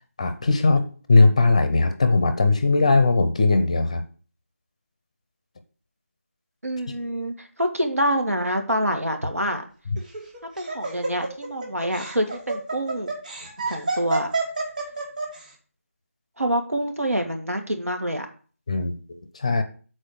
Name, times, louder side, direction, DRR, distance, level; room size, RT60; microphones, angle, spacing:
voice 1, 0.2-4.0 6.9-7.0 9.9-10.0 18.7-19.6, left 3 dB, 25° left, 9 dB, 0.6 m, -19 dB
voice 2, 6.6-9.6 10.6-13.1 13.7-14.3 16.4-18.3, equal, 75° right, 5 dB, 1.8 m, -26 dB
Laughter, 10.0-15.4, right 3 dB, 35° right, 1.6 m, -29 dB
6.8 x 4.3 x 6.5 m, 0.39 s
figure-of-eight pair, 165°, 8 cm